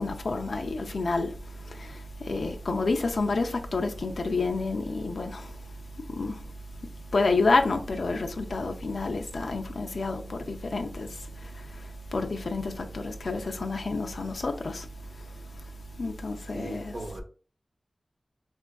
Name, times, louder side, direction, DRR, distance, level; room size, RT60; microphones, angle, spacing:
voice 1, 0.0-5.5 6.1-6.5 7.1-14.9 16.0-16.9, left 3 dB, 90° left, 0.4 m, -29 dB
voice 2, 16.5-17.2, right 1 dB, 70° right, 1.0 m, -38 dB
4.2 x 2.4 x 2.2 m
wide cardioid pair, 85°, 0 cm